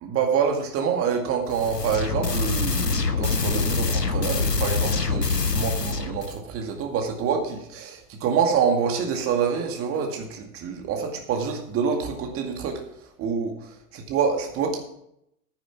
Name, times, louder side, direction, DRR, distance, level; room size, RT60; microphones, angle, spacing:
voice 1, 0.0-12.8 13.2-13.7 14.1-14.8, right 6 dB, 30° right, 3 dB, 2.1 m, -26 dB
sound 1, 1.5-6.4, left 4 dB, 90° left, 1.0 m, -25 dB
9.7 x 9.4 x 5.9 m, 0.77 s
figure-of-eight pair, 95°, 47 cm